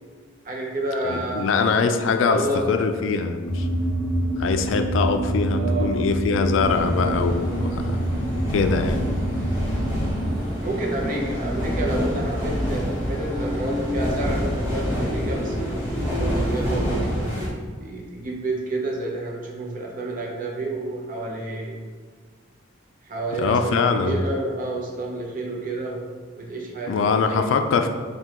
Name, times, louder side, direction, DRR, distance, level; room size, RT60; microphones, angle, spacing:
voice 1, 0.4-1.8 2.3-2.7 5.5-6.0 10.6-17.1 17.8-21.8 23.0-27.5, right 2 dB, 45° right, -1 dB, 0.7 m, -29 dB
voice 2, 1.1-3.7 4.4-8.0 8.5-9.1 23.4-24.2 26.9-27.9, left 5 dB, 75° left, 6 dB, 0.3 m, -23 dB
sound 1, 3.4-10.3, right 1 dB, 10° left, 0.4 m, -26 dB
sound 2, 6.6-17.5, equal, 10° right, 1.3 m, -27 dB
4.5 x 2.3 x 3.6 m, 1.5 s
head